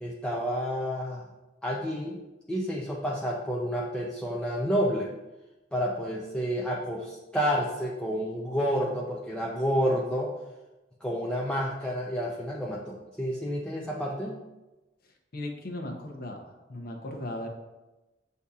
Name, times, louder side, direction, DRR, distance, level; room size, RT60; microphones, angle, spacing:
voice 1, 0.0-1.2 1.6-2.2 2.5-5.1 5.7-10.3 11.0-14.4, equal, 5° left, -4 dB, 0.4 m, -29 dB
voice 2, 15.3-16.4 16.7-17.5, left 1 dB, 60° left, 3 dB, 0.7 m, -36 dB
7.8 x 2.7 x 2.3 m, 1.0 s
head